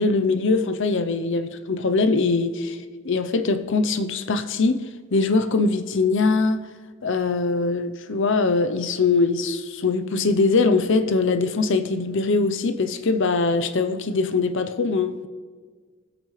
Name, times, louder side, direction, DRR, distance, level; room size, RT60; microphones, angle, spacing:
voice 1, 0.0-6.6 7.0-15.3, left 3 dB, 65° left, 0.7 m, -22 dB
23.5 x 8.5 x 3.2 m
head